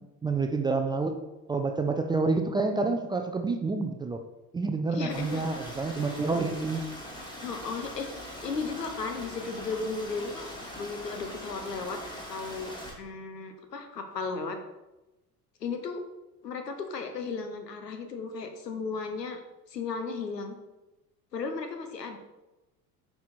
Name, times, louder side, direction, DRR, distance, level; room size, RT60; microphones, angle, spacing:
voice 1, 0.2-1.2 1.5-4.2 4.5-6.8, right 3 dB, 10° right, 5 dB, 0.4 m, -28 dB
voice 2, 4.9-5.4 7.4-8.1 8.4-10.5 10.8-12.0 12.3-14.6 15.6-16.0 16.4-19.4 19.7-20.6 21.3-22.2, left 4 dB, 80° left, 6 dB, 1.1 m, -35 dB
Stream, 5.1-12.9, equal, 10° left, 2.0 m, -42 dB
9.3 x 4.7 x 4.2 m, 1.0 s
figure-of-eight pair, 65°, 48 cm